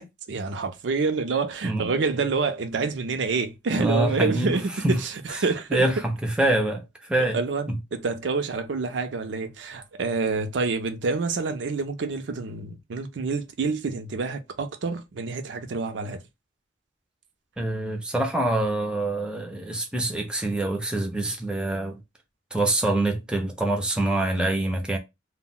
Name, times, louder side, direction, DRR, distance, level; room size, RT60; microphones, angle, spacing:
voice 1, 0.0-5.8 7.2-16.2, right 4 dB, 75° right, 0.5 m, -27 dB
voice 2, 3.8-4.6 4.8-5.0 5.7-6.8 7.1-7.4 7.7-7.8 17.6-22.0 22.5-25.0, right 1 dB, 5° right, 0.5 m, -25 dB
2.1 x 2.1 x 3.7 m
head